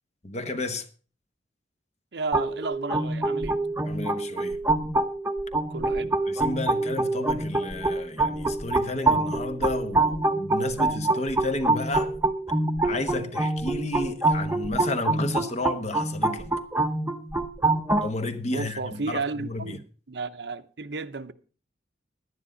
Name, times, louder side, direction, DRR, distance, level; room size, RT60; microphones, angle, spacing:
voice 1, 0.2-0.9 3.8-4.6 6.3-12.2 12.8-16.5 18.0-19.8, left 2 dB, 40° left, 1.0 m, -32 dB
voice 2, 2.1-3.6 5.7-6.1 18.5-21.3, right 4 dB, 70° right, 0.8 m, -33 dB
sound 1, 2.3-18.1, right 2 dB, 15° right, 0.8 m, -26 dB
11.0 x 9.8 x 5.0 m
head